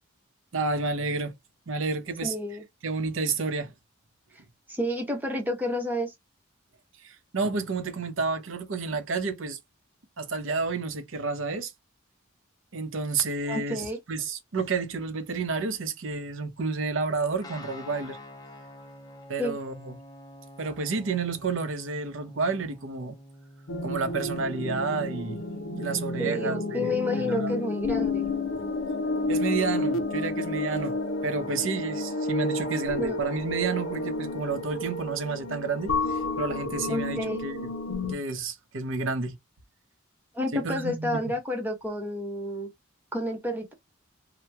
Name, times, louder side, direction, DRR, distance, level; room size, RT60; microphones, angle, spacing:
voice 1, 0.5-1.3 1.7-2.3 2.8-3.7 7.0-9.6 10.2-11.7 12.7-18.2 19.3-20.0 20.6-23.1 23.8-25.4 25.7-27.5 29.3-31.0 31.2-37.7 38.1-39.4 40.5-41.2, right 4 dB, 65° right, 0.7 m, -30 dB
voice 2, 2.2-2.6 4.7-6.1 13.5-14.0 19.4-19.6 26.2-28.3 33.0-33.2 36.9-37.4 40.3-42.7 43.1-43.7, left 1 dB, 10° right, 0.9 m, -30 dB
Guitar, 17.4-25.5, left 1 dB, 20° left, 0.6 m, -48 dB
sound 1, 23.7-38.2, left 2 dB, 70° left, 0.6 m, -30 dB
2.9 x 2.1 x 3.3 m
head